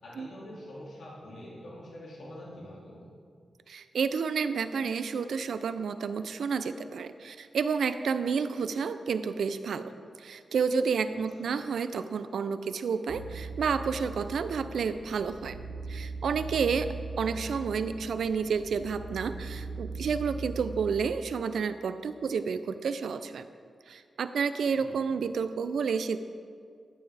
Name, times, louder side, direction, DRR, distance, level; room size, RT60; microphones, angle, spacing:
voice 1, 0.0-3.1 11.1-11.5 17.3-17.4 24.7-25.3, left 1 dB, 80° left, -7 dB, 2.4 m, -46 dB
voice 2, 3.7-9.9 10.2-15.6 15.9-23.5 23.9-26.2, right 6 dB, 85° right, 11 dB, 0.5 m, -30 dB
sound 1, 13.1-21.1, right 3 dB, 50° right, 1.0 m, -40 dB
12.5 x 9.4 x 3.4 m, 2.2 s
wide cardioid pair, 130°, 0 cm